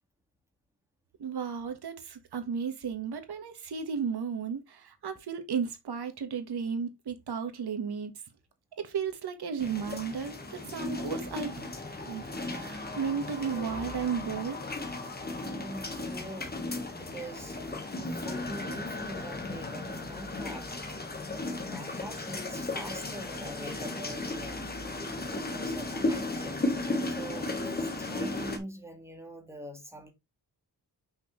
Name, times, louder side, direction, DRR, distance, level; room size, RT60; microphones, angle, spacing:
voice 1, 1.2-8.1 8.8-11.6 12.0-14.6, right 6 dB, 75° right, 1.4 m, -34 dB
sound 1, 9.6-28.6, left 2 dB, 25° left, 1.4 m, -35 dB
voice 2, 15.2-16.5 17.0-17.6 18.1-20.7 21.3-24.7 25.2-26.6 27.1-30.1, right 1 dB, 5° right, 1.9 m, -44 dB
6.2 x 5.9 x 3.1 m
wide cardioid pair, 150°, 40 cm